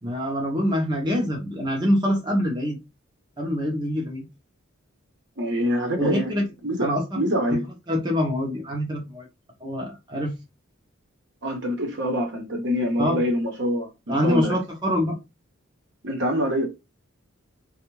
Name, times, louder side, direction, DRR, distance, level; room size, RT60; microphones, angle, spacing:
voice 1, 0.0-2.8 3.4-4.2 6.0-6.4 6.8-7.2 7.5-7.6 7.9-9.3 9.6-10.4 13.0-13.2 14.1-15.2, equal, 20° right, 0.7 m, -25 dB
voice 2, 5.4-6.3 6.6-6.9 7.1-7.7 11.4-14.5 16.0-16.7, equal, 60° right, 1.0 m, -25 dB
3.4 x 2.4 x 3.0 m
head